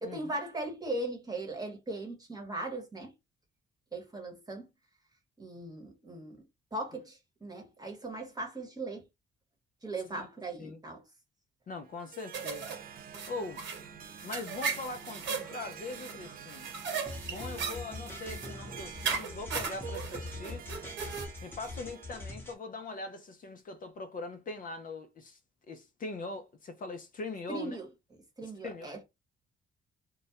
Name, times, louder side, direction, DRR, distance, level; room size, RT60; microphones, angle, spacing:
voice 1, 0.0-3.1 3.9-4.7 5.4-6.4 6.7-9.0 9.8-11.0 27.5-27.9 28.4-29.0, right 2 dB, 20° right, 0.9 m, -38 dB
voice 2, 11.7-12.8 13.3-13.6 14.2-16.7 17.2-20.6 21.4-25.4 25.7-27.8 28.4-29.0, left 3 dB, 45° left, 0.4 m, -41 dB
Harp, 11.8-22.4, right 8 dB, 50° right, 0.4 m, -49 dB
sound 1, 12.3-21.3, right 6 dB, 70° right, 1.0 m, -38 dB
sound 2, 17.1-22.5, left 3 dB, 10° left, 0.8 m, -43 dB
2.2 x 2.0 x 2.8 m
cardioid pair, 90°, 20 cm